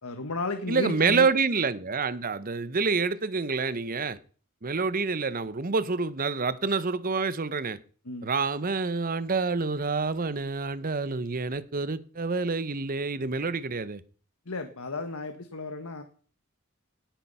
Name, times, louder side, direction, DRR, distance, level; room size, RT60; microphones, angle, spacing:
voice 1, 0.0-1.3 8.0-8.3 14.4-16.0, left 3 dB, 80° left, 1.6 m, -33 dB
voice 2, 0.7-4.2 4.6-7.8 8.2-14.0, right 4 dB, 40° right, 0.9 m, -27 dB
18.5 x 9.1 x 5.6 m
head